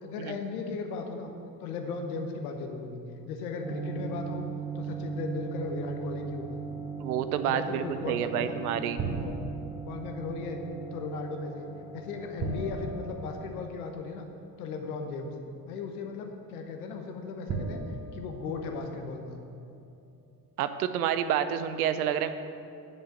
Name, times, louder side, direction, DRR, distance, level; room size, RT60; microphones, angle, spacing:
voice 1, 0.0-1.3 1.6-3.0 3.3-4.4 4.7-6.6 7.4-8.8 9.2-9.3 9.7-10.6 10.9-14.3 14.6-15.4 15.7-17.8 18.1-19.4, left 4 dB, 85° left, 4 dB, 1.1 m, -37 dB
sound 1, 3.6-13.5, right 6 dB, 15° right, 1.6 m, -39 dB
voice 2, 7.0-9.0 20.6-22.3, right 9 dB, 90° right, 11 dB, 0.6 m, -29 dB
sound 2, 9.0-9.9 12.4-14.0 15.2-15.3 17.5-19.2, right 3 dB, 40° right, 1.3 m, -37 dB
8.2 x 7.2 x 6.3 m, 2.5 s
hypercardioid pair, 60°, 43 cm